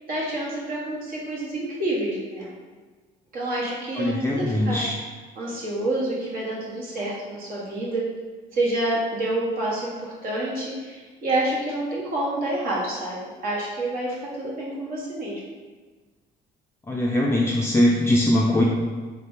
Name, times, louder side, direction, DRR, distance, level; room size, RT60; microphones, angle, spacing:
voice 1, 0.1-2.5 3.3-4.8 5.4-8.0 8.5-15.4, right 1 dB, 60° right, -5 dB, 1.2 m, -28 dB
voice 2, 4.0-4.9 16.9-18.6, left 1 dB, 15° left, -2 dB, 0.4 m, -21 dB
3.6 x 2.9 x 3.6 m, 1.4 s
cardioid pair, 110°, 17 cm